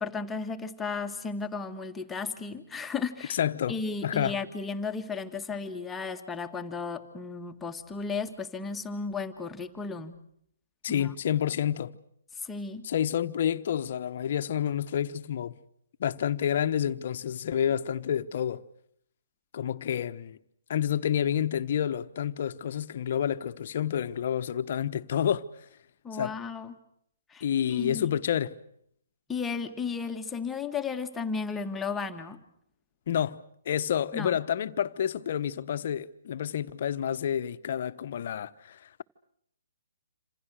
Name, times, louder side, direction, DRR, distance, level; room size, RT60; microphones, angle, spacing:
voice 1, 0.0-3.4 3.7-10.2 10.9-11.1 12.4-12.9 26.0-26.7 27.3-28.1 29.3-32.4 34.1-34.3, left 5 dB, 10° left, 1.8 m, -34 dB
voice 2, 3.3-3.7 4.0-4.4 10.8-11.9 12.8-15.5 16.0-18.6 19.5-20.4 20.7-25.5 26.1-26.3 27.4-28.6 33.1-39.0, left 9 dB, 50° left, 1.1 m, -29 dB
27.5 x 27.0 x 6.5 m
figure-of-eight pair, 135°, 0 cm